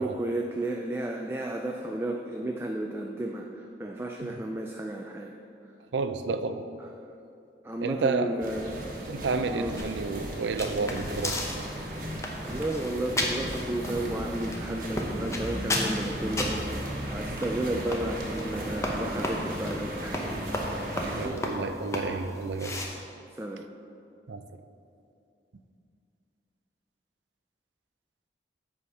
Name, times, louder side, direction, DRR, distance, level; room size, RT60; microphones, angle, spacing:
voice 1, 0.0-5.4 7.6-8.8 9.5-9.7 12.4-20.3 20.7-21.4 23.4-23.7, right 1 dB, 15° right, 1 dB, 0.3 m, -33 dB
voice 2, 5.9-6.7 7.8-8.4 9.1-11.4 21.0-22.8 24.3-24.6, right 4 dB, 90° right, 9 dB, 0.5 m, -31 dB
sound 1, 8.4-21.3, equal, 50° right, 1.2 m, -36 dB
sound 2, 9.8-22.9, left 1 dB, 15° left, 0.7 m, -35 dB
8.1 x 4.9 x 5.4 m, 2.6 s
head